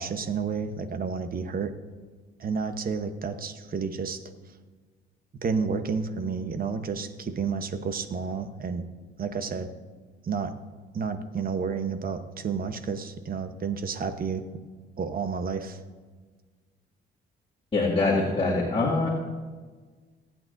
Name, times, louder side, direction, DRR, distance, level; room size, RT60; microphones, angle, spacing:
voice 1, 0.0-1.7 2.4-4.2 5.4-8.8 9.2-9.7 10.2-10.5 10.9-14.4 15.0-15.8, right 5 dB, 45° right, 9 dB, 1.0 m, -30 dB
voice 2, 17.7-19.1, left 3 dB, 25° left, -6 dB, 2.3 m, -24 dB
23.5 x 8.9 x 2.7 m, 1.4 s
cardioid pair, 90°, 20 cm